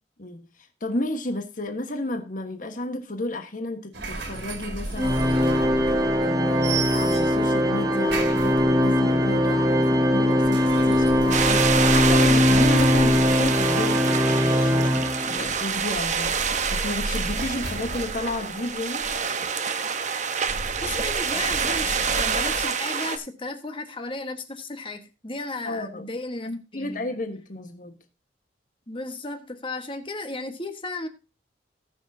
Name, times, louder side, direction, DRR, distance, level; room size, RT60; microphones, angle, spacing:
voice 1, 0.8-5.9 6.2-19.1 25.6-26.1 26.4-28.0, left 1 dB, 50° left, 1.4 m, -32 dB
sound 1, 3.9-6.3 6.6-7.5 8.1-9.0 10.3-13.9 15.4-19.3 20.4-22.6, right 2 dB, 75° right, 2.3 m, -34 dB
Organ, 5.0-15.6, left 1 dB, 20° right, 1.2 m, -21 dB
sound 2, 11.3-23.2, right 6 dB, 40° right, 0.9 m, -27 dB
voice 2, 20.8-27.1 28.9-31.1, left 2 dB, 30° left, 1.4 m, -34 dB
19.0 x 6.5 x 2.7 m
head